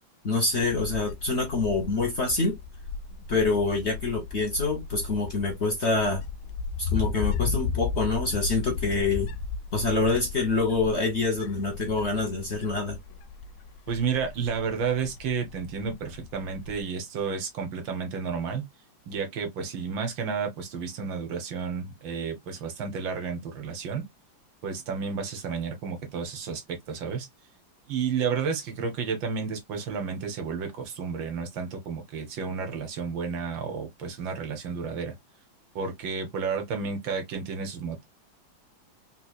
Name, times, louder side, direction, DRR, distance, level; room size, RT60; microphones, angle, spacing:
voice 1, 0.2-2.6 3.3-6.2 6.8-9.3 9.7-13.0, left 3 dB, 50° left, 0.9 m, -26 dB
Wind, 0.5-16.8, left 5 dB, 75° left, 1.2 m, -35 dB
voice 2, 13.9-18.7 19.1-24.1 24.6-27.3 27.9-35.2 35.8-38.0, right 5 dB, 80° right, 1.7 m, -31 dB
3.9 x 2.9 x 2.2 m
omnidirectional pair, 2.1 m